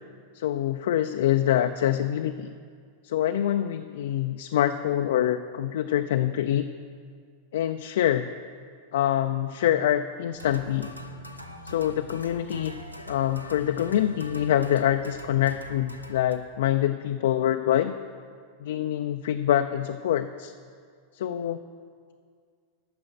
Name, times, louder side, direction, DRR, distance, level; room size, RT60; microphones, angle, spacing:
voice 1, 0.3-2.5 3.0-6.7 7.5-8.3 8.9-10.9 11.6-12.8 13.1-17.9 18.6-20.5 21.1-21.6, left 11 dB, 60° left, 7 dB, 0.3 m, -25 dB
sound 1, 10.3-16.4, left 1 dB, 90° right, 0.7 m, -42 dB
10.0 x 6.4 x 8.0 m, 2.1 s
figure-of-eight pair, 90°, 0 cm